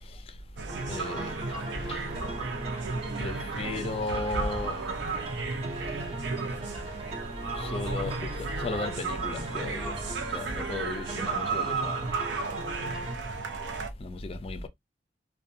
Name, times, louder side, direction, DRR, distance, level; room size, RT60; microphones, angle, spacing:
voice 1, 0.0-0.4 0.9-2.1 3.2-4.9 7.5-10.0 10.3-12.1 14.0-14.7, left 3 dB, 30° left, 0.3 m, -36 dB
sound 1, 0.6-13.9, right 4 dB, 85° right, 0.6 m, -34 dB
sound 2, 0.7-13.2, right 2 dB, 35° right, 0.5 m, -40 dB
2.6 x 2.2 x 2.5 m
head